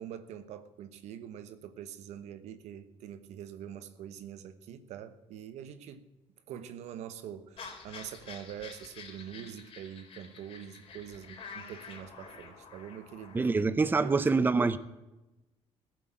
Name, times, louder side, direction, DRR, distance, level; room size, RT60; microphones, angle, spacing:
voice 1, 0.0-6.1 6.5-13.4 14.0-14.3, right 9 dB, 85° right, 1.1 m, -44 dB
sound 1, 7.6-13.5, left 5 dB, 55° left, 4.0 m, -48 dB
voice 2, 13.3-14.8, right 4 dB, 15° right, 0.7 m, -25 dB
14.5 x 7.8 x 9.0 m
cardioid pair, 120°, 11 cm